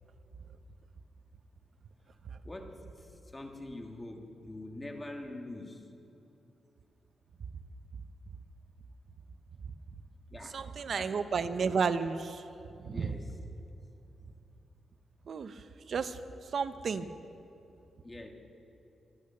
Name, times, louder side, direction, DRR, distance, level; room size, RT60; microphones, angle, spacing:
voice 1, 2.4-2.8 3.3-5.8 10.3-11.5 12.8-13.4 18.0-18.3, left 1 dB, 15° left, 3 dB, 1.8 m, -44 dB
voice 2, 10.5-12.5 12.8-13.1 15.2-17.1, right 5 dB, 55° right, 11 dB, 0.8 m, -33 dB
24.5 x 8.5 x 6.8 m, 2.9 s
cardioid pair, 110°, 0 cm